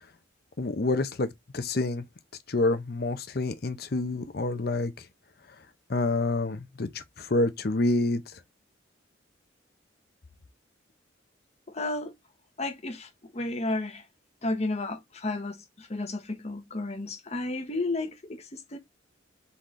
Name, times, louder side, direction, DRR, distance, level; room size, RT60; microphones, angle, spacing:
voice 1, 0.6-2.0 2.5-4.9 5.9-8.2, left 2 dB, 55° left, 0.7 m, -27 dB
voice 2, 11.7-12.1 12.6-14.0 14.4-18.8, left 2 dB, 35° left, 1.0 m, -32 dB
4.2 x 3.8 x 3.2 m
head